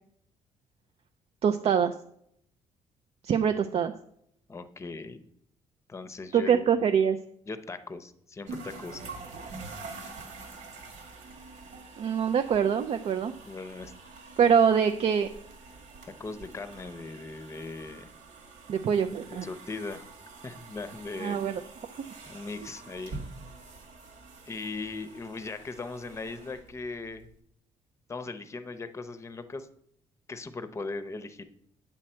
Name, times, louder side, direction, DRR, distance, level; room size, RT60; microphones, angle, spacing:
voice 1, 1.4-1.9 3.2-3.9 6.3-7.2 12.0-13.3 14.4-15.3 18.7-19.5 21.2-21.5, right 7 dB, 55° right, 7 dB, 0.5 m, -24 dB
voice 2, 4.5-5.2 5.9-6.7 7.5-9.0 13.5-13.9 16.0-18.1 19.3-20.0 20.4-21.5 22.3-23.2 24.5-27.3 28.1-29.7 30.3-31.4, left 3 dB, 20° left, 11 dB, 0.7 m, -39 dB
sound 1, 8.5-27.3, right 3 dB, 85° right, 2.1 m, -46 dB
8.9 x 7.5 x 4.4 m, 0.71 s
cardioid pair, 125°, 13 cm